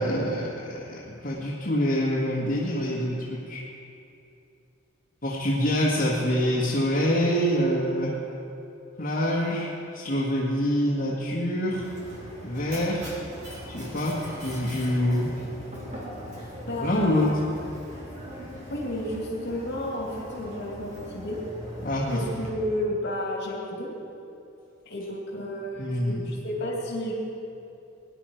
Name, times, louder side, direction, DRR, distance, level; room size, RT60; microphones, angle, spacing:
voice 1, 0.0-3.6 5.2-8.1 9.0-11.9 12.4-13.1 13.7-15.3 16.8-17.4 21.8-22.2 25.8-26.3, equal, 40° left, -7 dB, 1.7 m, -26 dB
Mechanisms, 11.7-22.5, equal, 35° right, 3.1 m, -40 dB
voice 2, 16.7-17.3 18.7-20.1 20.4-21.4 22.1-23.9 24.9-27.1, left 1 dB, 60° left, -2 dB, 2.4 m, -32 dB
19.5 x 10.5 x 4.5 m, 2.6 s
head